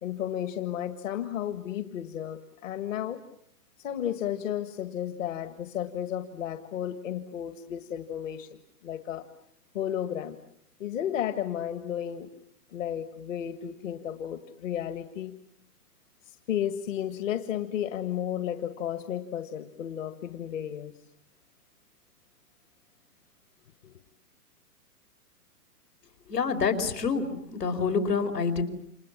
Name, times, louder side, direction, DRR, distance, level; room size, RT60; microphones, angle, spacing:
voice 1, 0.0-3.2 3.8-9.3 9.7-10.4 10.8-12.3 12.7-15.3 16.3-20.9 23.8-23.9, left 10 dB, 55° left, 9 dB, 1.8 m, -33 dB
voice 2, 26.3-27.3 27.5-28.6, left 5 dB, 85° left, 6 dB, 5.0 m, -27 dB
29.5 x 27.5 x 7.4 m, 0.71 s
hypercardioid pair, 145°, 47 cm